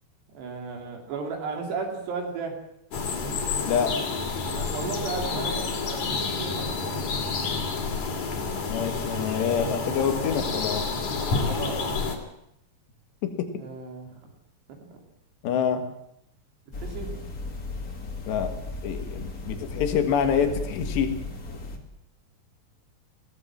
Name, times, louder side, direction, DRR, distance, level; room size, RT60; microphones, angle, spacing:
voice 1, 0.3-2.6 4.5-7.1 11.5-12.2 13.6-14.1 14.7-15.0 16.8-17.1, right 4 dB, 80° right, 2 dB, 5.1 m, -35 dB
sound 1, 2.9-12.2, left 4 dB, 50° left, 3.7 m, -29 dB
voice 2, 3.7-4.3 8.7-10.9 13.2-13.5 15.4-15.8 18.3-18.5 18.8-21.1, left 7 dB, 85° left, 7 dB, 3.9 m, -26 dB
sound 2, 16.7-21.8, left 2 dB, 30° left, 1.8 m, -35 dB
21.0 x 16.5 x 7.4 m, 0.76 s
omnidirectional pair, 4.8 m